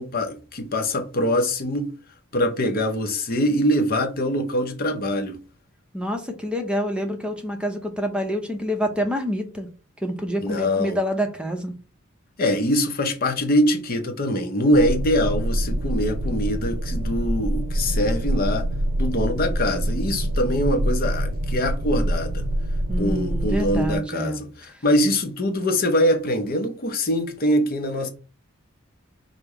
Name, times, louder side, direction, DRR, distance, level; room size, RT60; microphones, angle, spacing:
voice 1, 0.0-1.9 2.3-5.4 10.4-11.0 12.4-18.7 19.0-22.4 23.0-28.1, left 1 dB, 45° left, 0.7 m, -23 dB
voice 2, 5.9-9.7 10.0-11.7 22.9-24.4, equal, 5° right, 0.6 m, -27 dB
sound 1, 14.7-24.0, right 1 dB, 60° right, 0.5 m, -25 dB
5.2 x 2.0 x 4.6 m
head